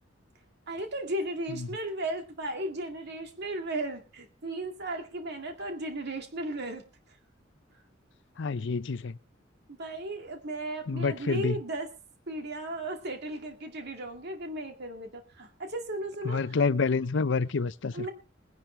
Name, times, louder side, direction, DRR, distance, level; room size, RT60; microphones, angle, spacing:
voice 1, 0.7-6.8 9.7-11.9 12.3-16.5 17.9-18.1, right 1 dB, 60° right, 2.3 m, -35 dB
voice 2, 8.4-9.2 10.9-11.6 16.2-18.1, left 4 dB, 65° left, 0.6 m, -28 dB
21.0 x 10.5 x 3.4 m
head